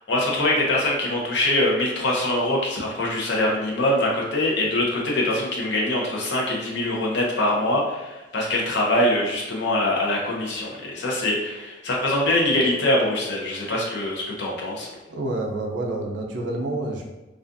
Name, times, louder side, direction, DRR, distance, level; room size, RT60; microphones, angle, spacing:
voice 1, 0.1-14.9, left 1 dB, 70° left, -3 dB, 0.6 m, -23 dB
voice 2, 15.1-17.1, right 2 dB, 75° right, 0 dB, 0.5 m, -28 dB
2.4 x 2.3 x 2.5 m, 1.1 s
head